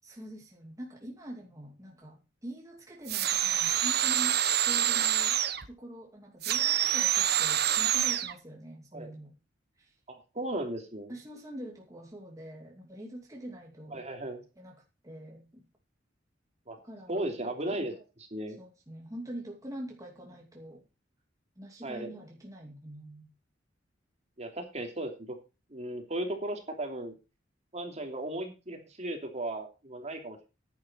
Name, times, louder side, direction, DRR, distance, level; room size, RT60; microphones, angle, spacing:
voice 1, 0.0-9.3 9.8-9.9 11.1-14.0 14.6-14.8 15.0-15.6 16.8-17.9 18.6-20.8 21.6-23.3, right 1 dB, 20° right, 2.5 m, -44 dB
sound 1, 3.1-5.7 6.4-8.3, right 11 dB, 60° right, 1.2 m, -26 dB
voice 2, 10.1-11.1 13.9-14.4 16.7-16.8 17.1-17.9 18.3-18.6 21.8-22.1 24.4-25.4 25.7-27.1 27.7-30.5, right 1 dB, 35° right, 3.0 m, -36 dB
10.5 x 10.5 x 4.5 m
head